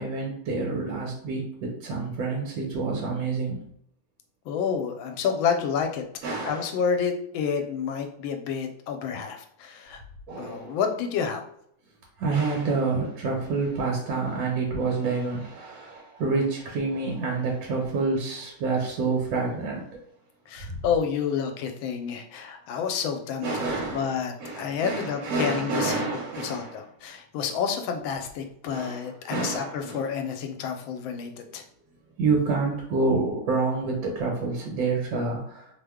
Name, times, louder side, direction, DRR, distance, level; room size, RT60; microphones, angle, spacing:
voice 1, 0.0-3.6 6.2-6.7 10.3-10.8 12.2-19.8 20.6-20.8 23.4-26.8 28.7-29.1 29.3-30.0 32.2-35.7, right 3 dB, 75° right, -2 dB, 1.5 m, -28 dB
voice 2, 4.5-6.0 6.4-10.0 10.4-11.4 20.5-23.6 23.9-26.0 26.4-31.6, left 6 dB, 85° left, 5 dB, 1.3 m, -29 dB
3.3 x 2.1 x 3.4 m, 0.70 s
omnidirectional pair, 2.2 m